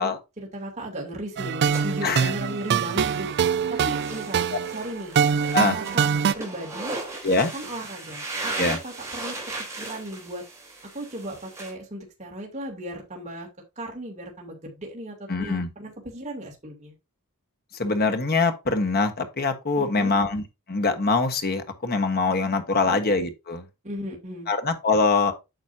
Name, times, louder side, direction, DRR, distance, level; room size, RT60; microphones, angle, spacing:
voice 1, 0.0-3.3 3.7-4.4 4.7-5.1 5.7-6.1 6.4-6.9 7.5-9.3 9.8-10.4 10.9-13.5 13.8-16.9 19.8-20.2 22.9-23.0 23.8-24.5, right 1 dB, 30° right, 2.7 m, -36 dB
sound 1, 1.4-6.3, right 7 dB, 50° right, 0.4 m, -24 dB
sound 2, 1.7-11.7, right 2 dB, 15° right, 3.4 m, -37 dB
voice 2, 15.3-15.7 17.8-20.4 20.7-23.7 24.5-25.3, left 3 dB, 45° left, 1.3 m, -23 dB
9.1 x 6.2 x 2.7 m
head